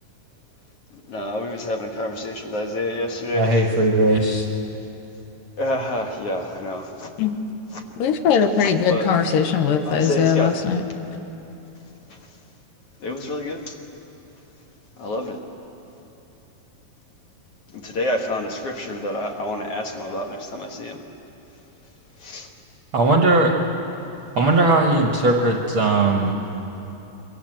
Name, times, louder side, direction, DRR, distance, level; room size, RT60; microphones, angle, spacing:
voice 1, 0.9-3.5 5.6-7.1 7.7-7.8 8.6-9.1 9.9-10.6 12.1-12.2 13.0-13.8 15.0-15.4 17.7-21.0 22.2-22.5, left 1 dB, 50° left, 2 dB, 2.1 m, -28 dB
voice 2, 3.3-4.5 22.9-23.5 24.3-26.4, right 2 dB, 50° right, 1 dB, 1.5 m, -18 dB
voice 3, 8.0-10.8, left 7 dB, 75° left, 6 dB, 2.7 m, -20 dB
26.5 x 23.5 x 7.7 m, 3.0 s
omnidirectional pair, 4.1 m